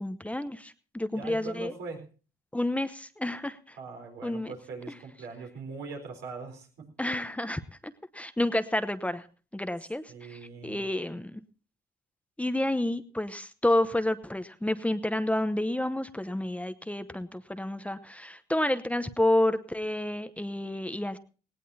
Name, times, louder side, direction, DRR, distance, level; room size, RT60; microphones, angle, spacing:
voice 1, 0.0-1.7 2.5-3.8 4.2-4.5 7.0-9.3 9.5-11.4 12.4-21.2, left 1 dB, 5° left, 10 dB, 0.9 m, -30 dB
voice 2, 1.1-2.1 3.8-6.9 10.1-10.8, right 4 dB, 85° right, 2 dB, 4.3 m, -41 dB
18.0 x 17.5 x 2.8 m, 0.36 s
cardioid pair, 80°, 18 cm